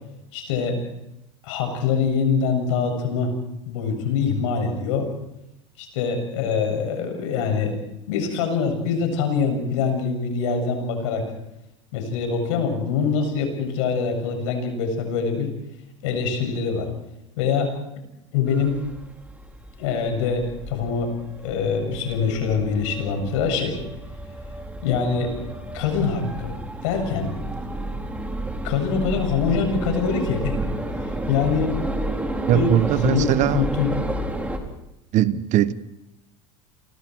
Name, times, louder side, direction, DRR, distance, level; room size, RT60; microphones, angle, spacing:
voice 1, 0.3-0.8 1.4-3.3 3.6-5.1 5.8-7.7 8.1-11.3 11.9-15.5 16.0-16.9 17.4-17.7 18.3-18.8 19.8-21.1 21.4-23.8 24.8-25.4 25.7-26.5 26.8-27.3 28.6-30.6 31.3-31.8 32.5-32.7 33.0-34.0, left 5 dB, 75° left, 7.5 m, -24 dB
sound 1, 18.5-34.6, right 1 dB, 10° right, 4.2 m, -31 dB
voice 2, 32.5-33.7 35.1-35.7, right 12 dB, 50° right, 1.3 m, -20 dB
29.5 x 25.0 x 4.7 m
hypercardioid pair, 90°, 16 cm